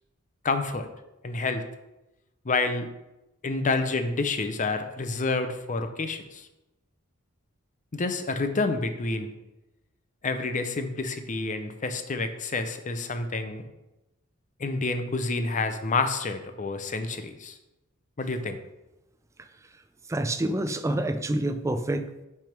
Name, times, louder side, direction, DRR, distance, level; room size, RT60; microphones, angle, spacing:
voice 1, 0.4-0.9 1.2-1.6 2.4-2.9 3.4-6.5 7.9-9.3 10.2-13.6 14.6-17.6 18.2-18.6, left 3 dB, 35° left, 8 dB, 0.6 m, -28 dB
voice 2, 20.1-22.3, right 1 dB, 15° right, 9 dB, 0.4 m, -27 dB
6.1 x 3.5 x 5.8 m, 0.95 s
head